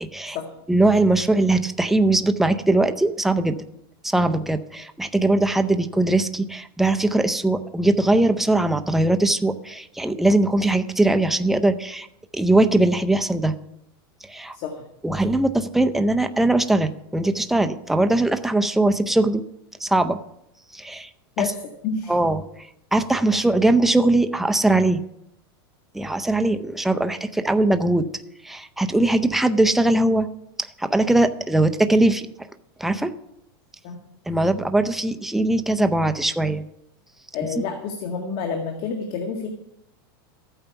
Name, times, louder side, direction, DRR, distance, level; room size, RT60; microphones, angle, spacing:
voice 1, 0.0-0.4 0.7-3.6 4.0-12.1 12.3-13.5 14.3-14.6 15.0-19.4 19.8-20.2 20.7-21.1 21.4-21.5 22.1-22.4 22.9-25.0 25.9-28.1 28.4-30.3 30.8-32.3 32.8-33.1 34.3-36.6, right 2 dB, ahead, 8 dB, 0.6 m, -20 dB
voice 2, 21.8-22.1 33.8-34.0 37.3-39.5, left 5 dB, 45° left, 3 dB, 1.9 m, -28 dB
14.0 x 9.0 x 5.8 m, 0.80 s
supercardioid pair, 155°, 13 cm